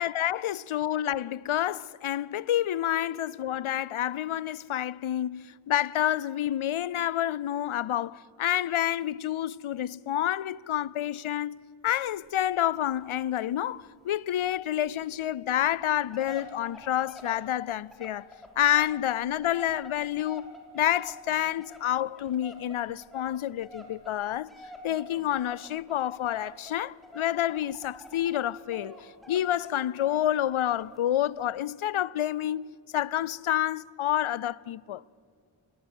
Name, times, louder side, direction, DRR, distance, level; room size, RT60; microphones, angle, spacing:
voice 1, 0.0-11.6 11.8-18.2 18.6-24.5 24.8-29.0 29.3-35.0, left 12 dB, 80° left, 0.6 m, -28 dB
sound 1, 12.1-12.2 12.5-12.6 12.9-13.0 13.4-13.5 13.8-13.9 14.4-14.5 15.1-15.2 15.6-28.4 28.7-31.0 31.4-31.5, equal, ahead, 3.9 m, -48 dB
21.5 x 17.0 x 8.9 m
wide cardioid pair, 60°, 49 cm